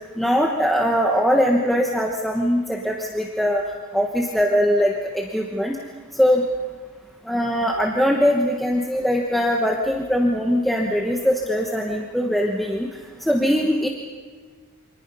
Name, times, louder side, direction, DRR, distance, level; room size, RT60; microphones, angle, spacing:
voice 1, 0.2-3.6 3.9-5.8 6.1-6.4 7.3-12.9 13.3-13.9, equal, ahead, 0 dB, 1.1 m, -21 dB
28.5 x 25.0 x 5.5 m, 1.5 s
head